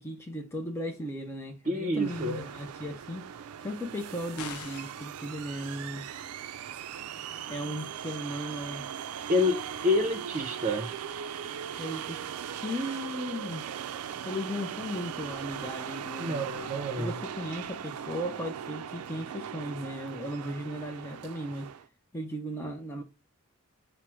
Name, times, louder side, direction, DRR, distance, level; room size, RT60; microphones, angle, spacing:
voice 1, 0.0-3.3 3.6-6.0 7.5-8.9 11.8-12.2 12.6-13.7 14.2-16.7 17.0-21.7 22.1-23.0, equal, 10° left, 0.5 m, -36 dB
voice 2, 1.6-2.4 9.3-10.9 16.2-17.2, left 2 dB, 35° right, 0.6 m, -28 dB
sound 1, 2.0-21.9, right 8 dB, 80° right, 0.4 m, -39 dB
sound 2, 4.4-5.1, left 8 dB, 70° left, 0.4 m, -41 dB
4.8 x 2.0 x 4.4 m
head